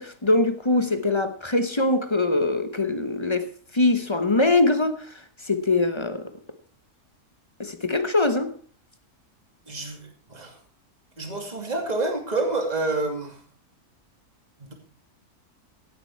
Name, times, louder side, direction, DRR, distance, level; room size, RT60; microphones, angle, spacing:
voice 1, 0.0-3.5 3.7-5.0 5.5-6.3 7.6-8.5, left 2 dB, 20° left, 0.9 m, -22 dB
voice 2, 9.7-10.5 11.2-13.4 14.6-14.7, right 2 dB, 25° right, 2.6 m, -28 dB
17.0 x 8.9 x 4.6 m
omnidirectional pair, 1.6 m